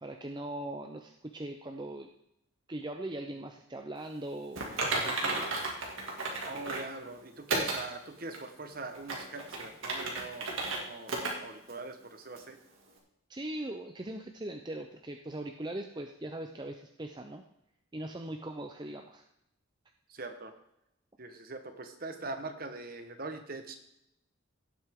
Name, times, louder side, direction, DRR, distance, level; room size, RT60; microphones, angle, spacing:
voice 1, 0.0-2.1 2.7-5.5 13.3-17.4 17.9-19.2, right 1 dB, 20° right, 4 dB, 0.6 m, -40 dB
Typing, 4.6-6.9 7.5-7.8 8.3-8.4 8.9-10.8 11.1-11.3 11.7-11.8 12.4-12.5, right 2 dB, 70° right, 2.2 m, -33 dB
voice 2, 6.5-10.5 10.8-12.6 20.1-20.5 21.2-23.7, right 3 dB, 45° right, 7 dB, 1.1 m, -42 dB
17.0 x 7.8 x 3.7 m, 0.81 s
head